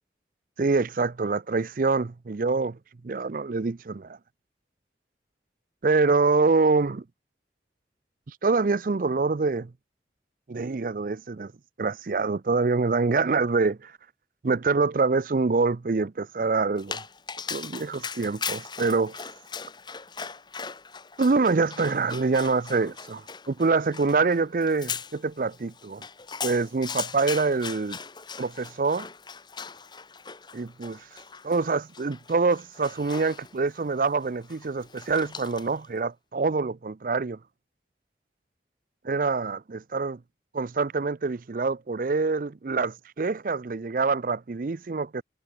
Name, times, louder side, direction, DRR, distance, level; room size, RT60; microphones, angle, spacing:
voice 1, 0.6-2.8 3.0-4.2 5.8-7.0 8.4-9.7 10.5-11.5 11.8-13.9 14.4-17.0 17.5-19.2 21.2-26.0 26.4-28.0 28.4-29.1 30.5-31.0 31.4-37.4 39.0-40.2 40.5-45.2, right 4 dB, 50° right, 0.5 m, -25 dB
Dog, 16.8-35.9, left 6 dB, 25° left, 1.3 m, -39 dB
head